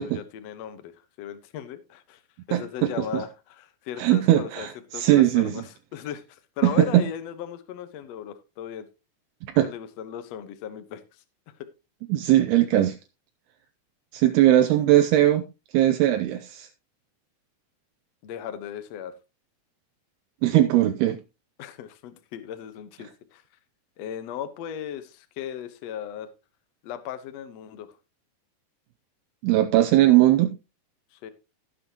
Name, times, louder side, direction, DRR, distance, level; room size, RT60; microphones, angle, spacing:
voice 1, 0.0-2.2 2.5-4.7 4.9-8.9 9.6-11.2 11.5-11.7 18.2-19.2 21.6-23.4 24.0-26.3 26.8-27.9 31.1-31.3, left 9 dB, 90° left, 1.4 m, -37 dB
voice 2, 2.5-3.2 4.0-5.6 6.6-7.0 9.6-9.7 12.1-13.0 14.1-15.5 15.7-16.7 20.4-21.2 29.4-30.5, right 14 dB, 80° right, 2.7 m, -20 dB
16.5 x 7.0 x 2.9 m
omnidirectional pair, 4.7 m